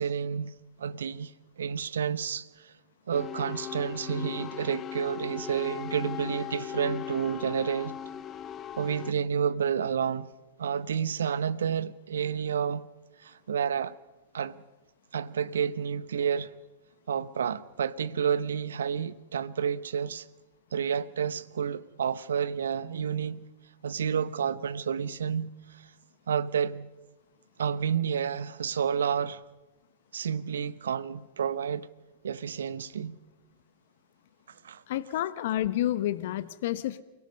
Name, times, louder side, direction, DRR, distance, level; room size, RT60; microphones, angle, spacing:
voice 1, 0.0-2.7 3.1-8.0 8.8-10.3 10.6-12.9 13.2-13.9 14.3-14.6 15.1-16.5 17.1-20.3 20.7-23.5 23.8-25.9 26.3-26.9 27.6-29.4 30.1-31.9 32.2-33.2 34.6-34.8, right 7 dB, 70° right, 0.8 m, -30 dB
sound 1, 3.1-9.1, left 9 dB, 25° left, 0.8 m, -38 dB
voice 2, 34.9-37.0, left 13 dB, 55° left, 0.9 m, -29 dB
29.0 x 17.0 x 5.4 m
figure-of-eight pair, 100°, 0 cm